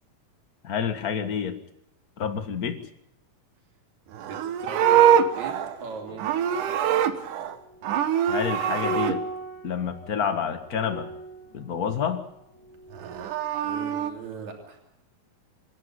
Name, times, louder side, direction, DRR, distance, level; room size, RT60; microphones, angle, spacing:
voice 1, 0.6-1.5 2.2-2.8 8.3-9.2 9.6-11.1 11.5-12.2, left 7 dB, 40° left, 8 dB, 1.5 m, -28 dB
voice 2, 4.1-5.5 5.8-7.3 13.6-14.8, right 5 dB, 65° right, 1 dB, 4.5 m, -41 dB
Livestock farm animals working animals, 4.1-7.6 7.8-9.1 12.9-14.1, right 10 dB, 85° right, 2.7 m, -23 dB
sound 1, 4.8-13.5 13.8-14.0, right 1 dB, 60° left, 3.7 m, -39 dB
27.0 x 10.5 x 9.7 m, 0.78 s
omnidirectional pair, 3.6 m